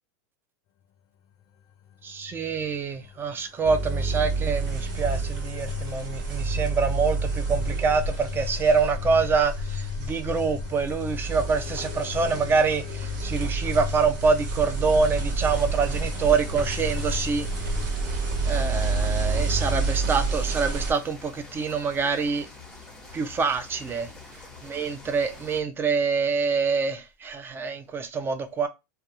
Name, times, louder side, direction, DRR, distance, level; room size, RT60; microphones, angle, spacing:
sound 1, 1.6-17.9, left 10 dB, 40° left, 0.5 m, -39 dB
voice 1, 2.0-17.5 18.4-22.5 23.1-24.1 24.6-28.7, right 5 dB, 20° right, 0.5 m, -26 dB
sound 2, 3.6-20.9, right 3 dB, 60° right, 1.0 m, -29 dB
sound 3, 15.5-25.6, left 3 dB, 5° left, 1.0 m, -46 dB
2.3 x 2.2 x 2.9 m
hypercardioid pair, 120°, 10 cm